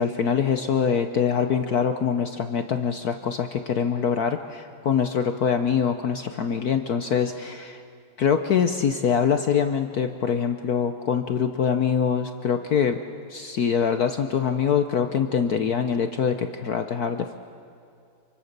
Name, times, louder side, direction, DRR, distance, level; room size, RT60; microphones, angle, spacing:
voice 1, 0.0-7.8 8.2-13.0 13.3-17.4, left 7 dB, 60° left, 7 dB, 1.1 m, -24 dB
27.5 x 24.5 x 6.7 m, 2.4 s
omnidirectional pair, 2.3 m